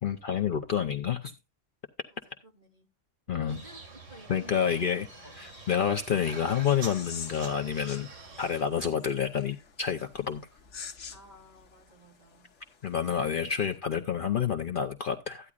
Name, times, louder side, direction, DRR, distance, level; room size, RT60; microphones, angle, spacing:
voice 1, 0.0-1.3 3.3-3.6 4.3-5.1 5.4-8.1 8.4-10.4 12.8-15.5, left 8 dB, 50° left, 0.8 m, -29 dB
voice 2, 2.1-2.9 3.3-5.4 11.1-12.5, equal, 35° right, 2.7 m, -53 dB
sound 1, 3.5-8.6, right 3 dB, 85° right, 2.4 m, -46 dB
sound 2, 6.3-13.8, left 6 dB, 70° left, 1.3 m, -48 dB
13.5 x 9.7 x 2.4 m
omnidirectional pair, 1.3 m